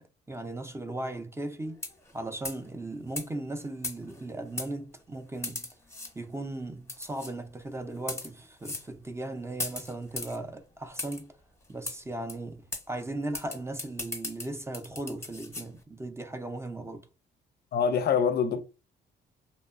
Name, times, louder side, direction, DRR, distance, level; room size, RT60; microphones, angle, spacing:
voice 1, 0.0-1.8 2.1-5.7 6.1-11.4 11.7-17.1, right 2 dB, 15° right, 0.4 m, -37 dB
sound 1, 1.7-2.1 2.4-2.7 3.2-3.3 3.8-4.2 4.6-4.7 5.4-6.1 6.9-7.3 8.0-8.3 8.6-8.9 9.6-10.4 11.0-11.2 11.9-12.0 12.3-12.4 12.7-12.8 13.3-15.7, left 2 dB, 15° left, 0.8 m, -37 dB
voice 2, 17.7-18.6, left 7 dB, 55° left, 0.4 m, -25 dB
2.8 x 2.1 x 2.4 m
cardioid pair, 90°, 20 cm